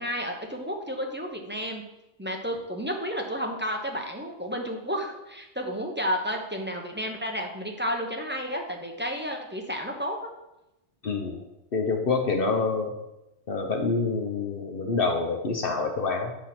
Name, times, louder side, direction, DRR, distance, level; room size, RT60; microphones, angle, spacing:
voice 1, 0.0-1.8 2.2-10.3, equal, 10° right, 1 dB, 0.7 m, -31 dB
voice 2, 11.0-11.4 11.7-13.0 13.5-16.4, left 4 dB, 55° left, 3 dB, 1.0 m, -27 dB
6.8 x 4.2 x 5.9 m, 0.92 s
omnidirectional pair, 1.2 m